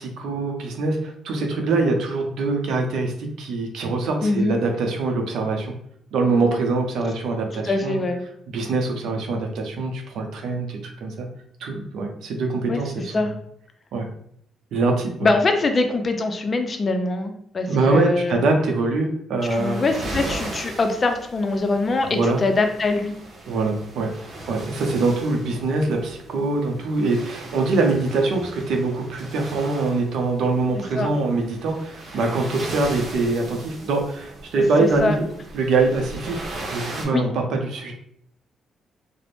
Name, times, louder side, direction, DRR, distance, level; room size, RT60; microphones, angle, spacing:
voice 1, 0.0-5.7 6.1-8.0 8.5-11.3 11.6-13.3 13.9-14.1 14.7-15.3 17.7-19.8 22.1-22.4 23.5-24.1 24.5-35.3 35.5-36.5 36.7-37.9, right 3 dB, 75° right, 2 dB, 0.5 m, -23 dB
voice 2, 4.2-4.6 7.6-8.2 12.7-12.8 13.1-13.3 15.2-18.4 19.5-23.1 31.0-31.1 34.8-35.2 37.1-37.2, left 3 dB, 35° left, 6 dB, 0.4 m, -23 dB
sound 1, 19.4-37.1, right 2 dB, 50° right, 0.8 m, -38 dB
2.5 x 2.0 x 3.3 m, 0.68 s
cardioid pair, 90°, 0 cm